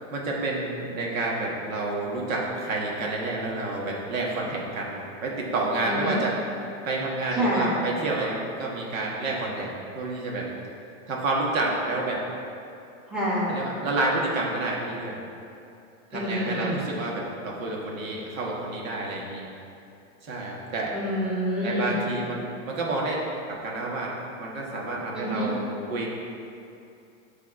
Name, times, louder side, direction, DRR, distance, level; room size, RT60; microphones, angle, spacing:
voice 1, 0.1-6.4 6.8-10.5 11.1-12.2 13.5-15.2 16.1-19.5 20.2-20.9 21.6-23.2 23.5-25.6 25.9-26.1, right 2 dB, 85° right, -2 dB, 1.6 m, -29 dB
voice 2, 5.9-6.2 7.3-7.8 13.1-13.5 16.1-16.9 20.9-21.9 25.1-25.5, equal, ahead, -8 dB, 1.1 m, -27 dB
8.6 x 3.5 x 4.6 m, 2.6 s
supercardioid pair, 160°, 39 cm